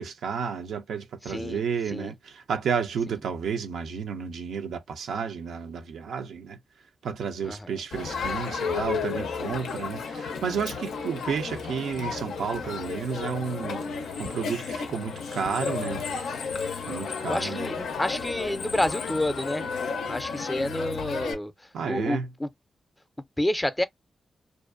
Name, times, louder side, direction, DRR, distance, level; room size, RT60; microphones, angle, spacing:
voice 1, 0.0-6.6 7.0-13.8 14.2-16.0 16.9-17.7 21.7-22.3, right 6 dB, 85° right, 0.4 m, -31 dB
voice 2, 1.3-1.6 1.9-2.1 7.4-7.8 17.3-19.7 20.1-21.5 21.8-22.5 23.4-23.8, left 1 dB, 15° left, 0.4 m, -29 dB
Crowd, 7.9-21.3, left 5 dB, 85° left, 0.4 m, -33 dB
2.4 x 2.2 x 2.4 m
cardioid pair, 50°, 0 cm